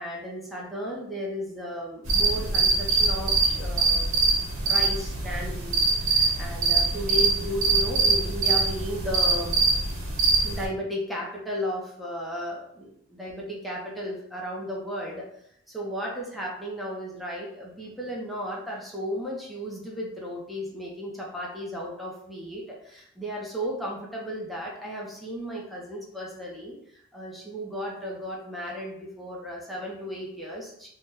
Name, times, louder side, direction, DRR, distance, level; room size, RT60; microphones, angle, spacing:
voice 1, 0.0-4.2 4.6-9.6 10.4-15.3 15.7-30.9, equal, ahead, -4 dB, 0.5 m, -34 dB
sound 1, 2.0-10.6, right 3 dB, 90° right, 0.8 m, -23 dB
2.7 x 2.1 x 3.6 m, 0.70 s
head